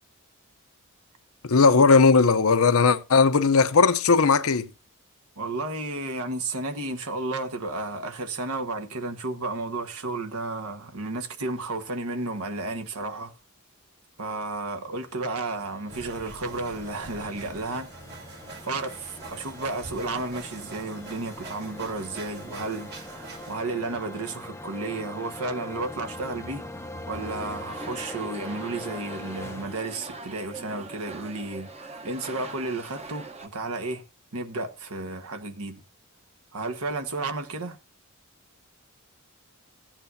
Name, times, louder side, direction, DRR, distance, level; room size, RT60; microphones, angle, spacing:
voice 1, 1.4-4.7, left 4 dB, 65° left, 0.7 m, -18 dB
voice 2, 5.4-13.3 14.2-17.9 18.3-18.4 18.6-26.6 27.1-34.0 34.3-35.8 36.5-37.8, right 2 dB, 75° right, 1.3 m, -32 dB
sound 1, 15.1-29.8, left 1 dB, 10° left, 0.6 m, -42 dB
sound 2, 15.9-23.5, right 2 dB, 50° right, 2.6 m, -44 dB
sound 3, 27.1-33.5, right 2 dB, 30° right, 1.0 m, -42 dB
15.5 x 8.8 x 2.7 m
head